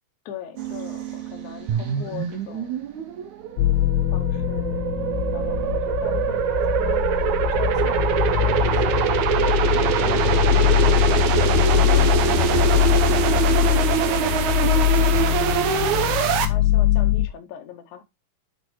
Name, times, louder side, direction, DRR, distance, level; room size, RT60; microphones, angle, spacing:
voice 1, 0.3-2.8 4.1-4.9 5.3-9.6 10.0-11.1 11.8-15.4 16.0-18.0, left 8 dB, 70° left, 2.0 m, -39 dB
sound 1, 0.5-5.8, right 10 dB, 85° right, 3.6 m, -38 dB
sound 2, 1.7-16.5, right 9 dB, 70° right, 1.9 m, -23 dB
sound 3, 3.6-17.3, left 13 dB, 90° left, 2.4 m, -22 dB
11.0 x 4.1 x 3.0 m
omnidirectional pair, 4.1 m